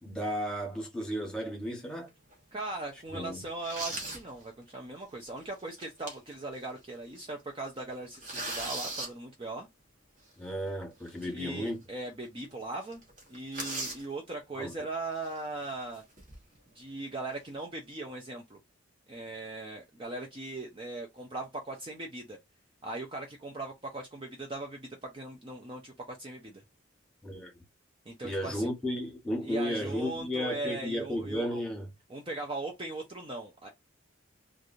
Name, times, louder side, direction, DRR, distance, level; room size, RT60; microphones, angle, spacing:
voice 1, 0.0-2.1 3.1-3.4 10.4-11.8 14.5-14.7 27.2-27.5 28.2-31.9, equal, 5° left, 1.2 m, -34 dB
sound 1, 2.1-2.3 2.9-3.0 3.5-4.3 4.7-4.8 5.6-6.4 6.8-6.9 7.2-7.4 7.8-9.1 11.1-11.2 11.7-11.8 12.1-12.2 12.4-12.6 12.9-14.1 15.1-15.4 15.9-16.6, right 2 dB, 40° right, 1.1 m, -38 dB
voice 2, 2.5-9.7 11.2-13.0 13.3-16.0 16.7-18.6 19.1-22.4 22.8-26.6 28.1-28.7 29.4-31.6 32.1-33.7, right 2 dB, 25° right, 0.5 m, -39 dB
3.2 x 2.4 x 2.6 m
head